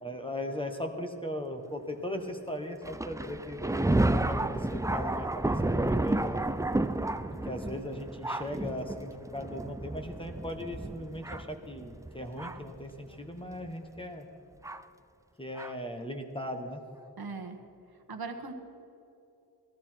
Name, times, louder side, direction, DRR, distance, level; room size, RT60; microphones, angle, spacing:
voice 1, 0.0-3.9 4.3-6.5 7.4-14.3 15.4-16.8, left 1 dB, 15° left, 5 dB, 1.4 m, -38 dB
Thunder, 2.8-12.8 13.5-13.6 14.6-14.8 15.6-15.7, right 2 dB, 10° right, 0.4 m, -31 dB
voice 2, 17.2-17.6 18.1-18.5, right 4 dB, 65° right, 6 dB, 1.3 m, -39 dB
17.0 x 13.5 x 4.6 m, 2.8 s
wide cardioid pair, 65°, 40 cm